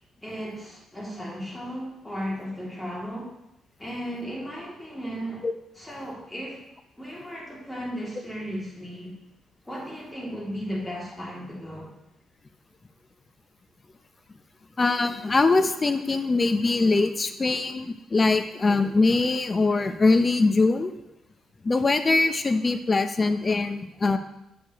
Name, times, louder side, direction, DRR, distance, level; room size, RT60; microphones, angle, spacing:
voice 1, 0.2-3.3 3.8-5.5 5.7-6.6 7.0-9.2 9.7-11.9, equal, 10° left, -4 dB, 2.5 m, -35 dB
voice 2, 14.8-20.9 21.6-24.2, left 3 dB, 30° left, 9 dB, 0.6 m, -22 dB
8.2 x 6.6 x 3.0 m, 0.85 s
cardioid pair, 90°, 0 cm